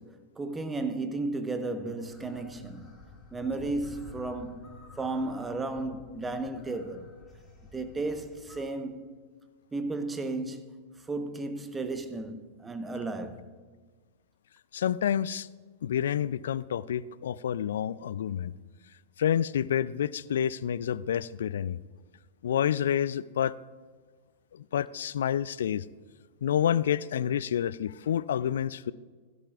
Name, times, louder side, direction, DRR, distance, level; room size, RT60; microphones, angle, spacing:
voice 1, 0.0-3.0 3.3-7.1 7.7-9.2 9.7-13.4, right 2 dB, 15° right, 1.0 m, -34 dB
sound 1, 2.1-8.6, left 3 dB, 15° left, 3.6 m, -51 dB
voice 2, 14.7-15.5 15.8-18.5 19.2-21.8 22.4-23.5 24.5-25.8 26.4-28.9, left 9 dB, 70° left, 0.3 m, -28 dB
16.0 x 12.0 x 2.4 m
hypercardioid pair, 100°, 0 cm